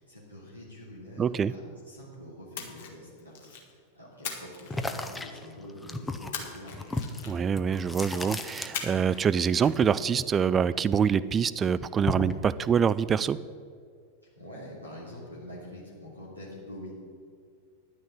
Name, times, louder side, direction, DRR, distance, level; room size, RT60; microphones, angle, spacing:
voice 1, 0.0-6.9 14.4-17.0, left 1 dB, 90° left, -7 dB, 2.6 m, -45 dB
voice 2, 1.2-1.5 7.2-13.4, right 7 dB, 20° right, 17 dB, 0.3 m, -25 dB
Splash splatter, 2.5-3.7 4.2-5.4 6.3-7.6 8.7-9.2 9.5-9.7, left 6 dB, 55° left, 1.6 m, -39 dB
sound 1, 4.7-9.2 9.5-11.1 11.5-12.5, left 2 dB, 10° left, 0.7 m, -35 dB
10.5 x 6.5 x 8.0 m, 2.2 s
figure-of-eight pair, 90°, 0 cm